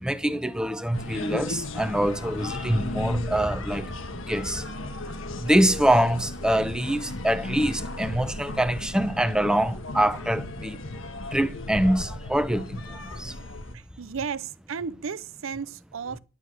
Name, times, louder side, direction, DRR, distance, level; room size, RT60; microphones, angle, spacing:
voice 1, 0.0-3.9 4.1-4.6 5.4-10.8 11.3-13.3, right 1 dB, 5° right, 0.8 m, -24 dB
sound 1, 0.9-13.8, left 2 dB, 70° left, 1.6 m, -36 dB
voice 2, 13.7-16.2, right 6 dB, 80° right, 0.6 m, -34 dB
10.0 x 9.8 x 6.2 m
head